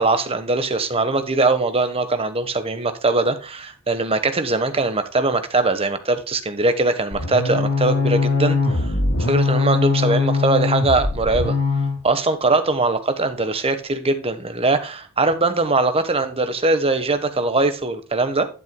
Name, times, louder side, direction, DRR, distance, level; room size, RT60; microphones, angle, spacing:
voice 1, 0.0-11.6 12.0-18.5, right 3 dB, 25° right, 1.2 m, -21 dB
sound 1, 7.1-12.0, left 3 dB, 65° left, 3.6 m, -21 dB
11.0 x 9.2 x 2.2 m
head